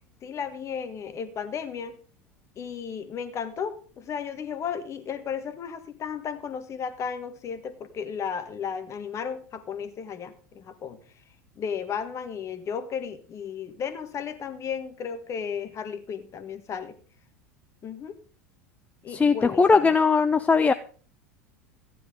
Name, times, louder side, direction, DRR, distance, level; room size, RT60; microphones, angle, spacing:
voice 1, 0.2-2.0 2.6-11.0 11.6-17.0 17.8-18.1 19.0-19.9, left 7 dB, 35° left, 11 dB, 1.6 m, -34 dB
voice 2, 19.1-20.7, left 4 dB, 15° left, 10 dB, 0.6 m, -20 dB
15.0 x 10.0 x 3.7 m, 0.41 s
figure-of-eight pair, 80°, 9 cm